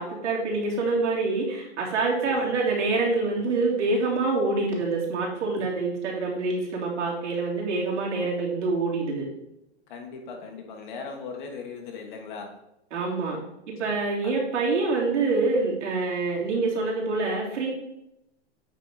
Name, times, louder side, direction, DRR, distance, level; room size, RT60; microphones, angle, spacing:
voice 1, 0.0-9.3 12.9-13.4 13.8-17.7, right 3 dB, 90° right, -3 dB, 3.2 m, -26 dB
voice 2, 9.9-12.5 14.2-14.3, left 5 dB, 45° left, 3 dB, 1.5 m, -38 dB
8.8 x 4.3 x 5.0 m, 0.85 s
hypercardioid pair, 170°, 34 cm